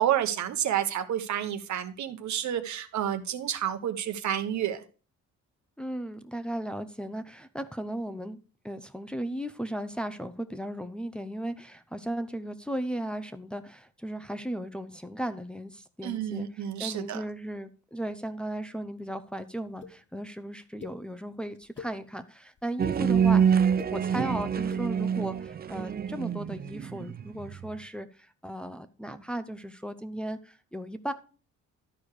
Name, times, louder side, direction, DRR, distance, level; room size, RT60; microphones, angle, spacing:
voice 1, 0.0-4.8 16.0-17.2, right 10 dB, 70° right, 1.1 m, -29 dB
voice 2, 5.8-8.4 8.6-31.1, right 1 dB, 5° left, 0.7 m, -36 dB
sound 1, 19.8-19.9 20.8-20.9 21.5-21.9 22.6-22.9 23.6-23.9 24.6-24.8, left 5 dB, 40° left, 1.5 m, -43 dB
sound 2, 22.8-27.7, right 7 dB, 30° right, 0.5 m, -26 dB
12.0 x 4.7 x 4.8 m
cardioid pair, 90°, 30 cm